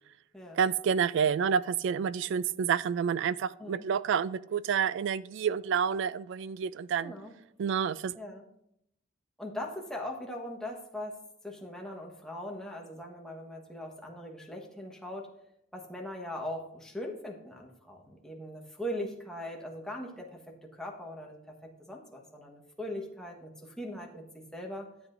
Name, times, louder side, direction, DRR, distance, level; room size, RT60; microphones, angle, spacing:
voice 1, 0.5-7.1 7.6-8.1, right 7 dB, 65° right, 18 dB, 0.3 m, -29 dB
voice 2, 7.0-7.3 8.1-8.4 9.4-11.2 11.4-15.3 15.7-24.9, left 1 dB, 5° left, 0 dB, 1.2 m, -40 dB
12.5 x 8.0 x 2.5 m, 0.78 s
head